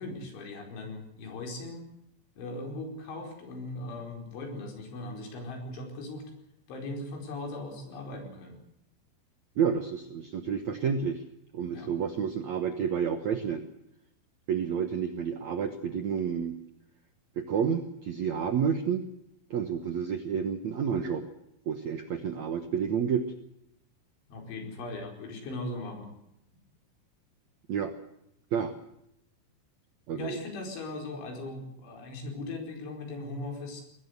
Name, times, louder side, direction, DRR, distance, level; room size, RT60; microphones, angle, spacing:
voice 1, 0.0-1.9 2.4-6.3 6.7-8.6 11.7-11.9 24.3-26.1 30.1-33.8, left 2 dB, 85° left, 3 dB, 7.1 m, -39 dB
voice 2, 9.5-11.2 11.5-13.7 14.5-16.5 17.4-19.0 19.5-21.2 21.6-23.3 27.7-27.9 28.5-28.7 30.1-30.4, right 7 dB, 85° right, 8 dB, 1.5 m, -30 dB
22.0 x 19.0 x 8.0 m, 0.79 s
omnidirectional pair, 5.3 m